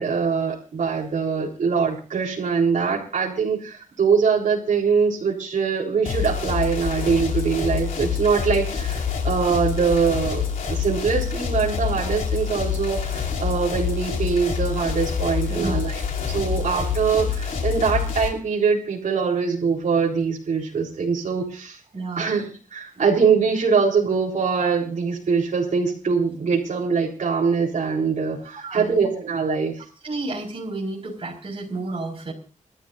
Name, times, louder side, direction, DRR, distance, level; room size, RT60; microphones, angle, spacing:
voice 1, 0.0-21.8 22.2-29.7, right 5 dB, 65° right, -3 dB, 3.9 m, -23 dB
sound 1, 6.1-18.3, left 7 dB, 85° left, 3.1 m, -26 dB
voice 2, 21.9-22.3 23.0-23.1 28.6-29.0 30.0-32.3, right 2 dB, 40° right, 2 dB, 5.6 m, -31 dB
29.0 x 13.0 x 2.6 m, 0.38 s
wide cardioid pair, 100°, 14 cm